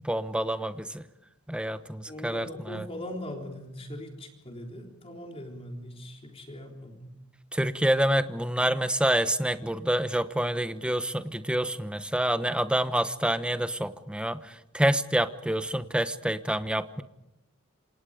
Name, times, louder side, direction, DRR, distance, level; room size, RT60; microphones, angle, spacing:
voice 1, 0.0-1.0 1.5-2.8 7.5-17.0, right 1 dB, 5° right, 11 dB, 1.0 m, -27 dB
voice 2, 2.1-7.1, left 1 dB, 25° left, 2 dB, 3.7 m, -40 dB
27.0 x 27.0 x 5.1 m, 0.89 s
head